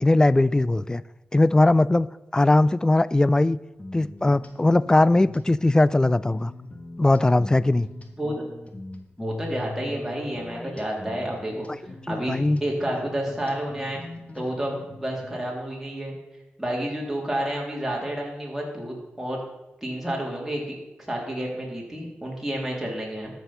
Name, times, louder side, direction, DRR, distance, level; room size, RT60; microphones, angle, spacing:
voice 1, 0.0-1.0 1.3-2.1 2.3-3.6 3.9-6.5 7.0-7.9 10.5-10.7 12.1-12.6, left 2 dB, 15° left, 19 dB, 0.3 m, -20 dB
sound 1, 3.8-15.5, left 2 dB, 35° left, 1.3 m, -41 dB
voice 2, 9.2-14.0 14.3-16.1 16.6-19.4 19.8-20.7 21.1-23.3, right 1 dB, 5° right, -3 dB, 3.4 m, -30 dB
13.0 x 6.2 x 5.6 m, 0.98 s
cardioid pair, 80°, 4 cm